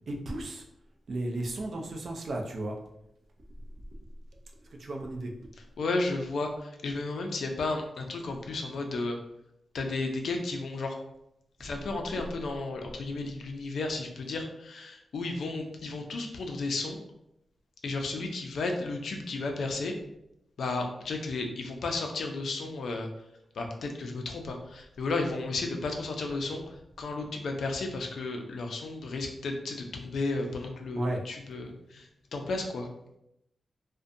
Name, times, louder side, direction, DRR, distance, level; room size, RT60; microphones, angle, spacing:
voice 1, 0.1-0.6 1.1-2.7 4.7-5.5 31.0-31.2, right 2 dB, 55° right, 2 dB, 0.4 m, -34 dB
voice 2, 5.8-9.2 9.7-10.9 11.6-17.0 17.8-19.9 20.6-23.1 23.6-26.6 27.0-32.9, left 3 dB, 75° left, 3 dB, 0.4 m, -33 dB
2.5 x 2.1 x 2.6 m, 0.82 s
wide cardioid pair, 135°, 0 cm